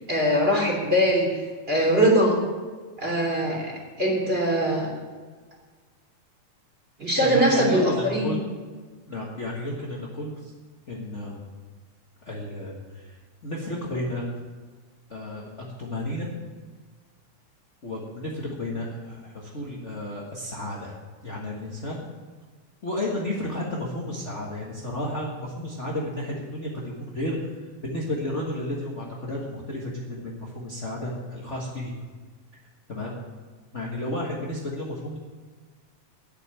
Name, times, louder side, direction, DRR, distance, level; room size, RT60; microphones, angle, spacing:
voice 1, 0.1-1.3 1.7-2.4 3.0-4.9 7.0-8.3, equal, 15° right, -2 dB, 3.0 m, -22 dB
voice 2, 7.2-8.4 9.1-10.5 10.9-11.4 12.2-13.1 13.4-14.2 15.1-15.5 15.8-16.3 17.8-20.9 21.2-22.0 22.8-27.4 27.8-31.9 32.9-33.1 33.7-35.2, left 1 dB, 50° left, -4 dB, 0.8 m, -32 dB
10.5 x 8.2 x 9.0 m, 1.4 s
omnidirectional pair, 4.0 m